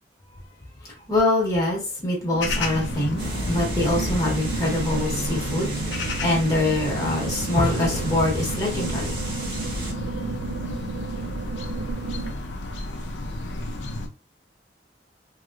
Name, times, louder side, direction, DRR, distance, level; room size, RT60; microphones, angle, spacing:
voice 1, 0.8-9.1, left 1 dB, 20° left, 1.1 m, -24 dB
sound 1, 2.3-12.3, right 4 dB, 70° right, 0.3 m, -33 dB
sound 2, 2.4-14.1, left 2 dB, 80° left, 0.6 m, -32 dB
sound 3, 3.2-9.9, right 1 dB, 30° right, 1.0 m, -34 dB
3.0 x 2.9 x 2.4 m
head